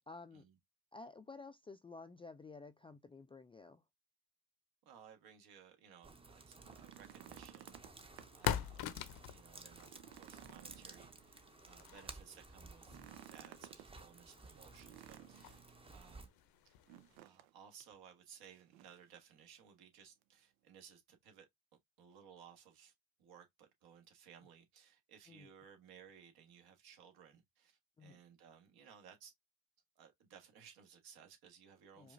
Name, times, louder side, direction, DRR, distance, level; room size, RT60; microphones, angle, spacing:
voice 1, 0.1-0.5 0.9-3.8 12.9-13.1 25.3-25.5 28.0-28.2 32.0-32.1, left 3 dB, 15° left, 0.3 m, -53 dB
voice 2, 4.8-9.0 9.3-15.6 15.9-16.3 16.6-16.7 17.2-21.5 22.0-22.9 23.2-29.3 30.0-32.1, right 8 dB, 65° right, 1.5 m, -60 dB
sound 1, 6.0-16.3, right 3 dB, 15° right, 0.7 m, -56 dB
sound 2, 6.5-8.8 9.2-9.3 9.7-11.6 12.8-13.9 14.8-15.7 16.9-17.5 17.8-17.9 18.5-19.1 20.2-20.3, right 13 dB, 90° right, 0.6 m, -56 dB
sound 3, 6.9-17.2, left 11 dB, 60° left, 0.7 m, -46 dB
4.9 x 2.4 x 2.6 m
supercardioid pair, 80°, 40 cm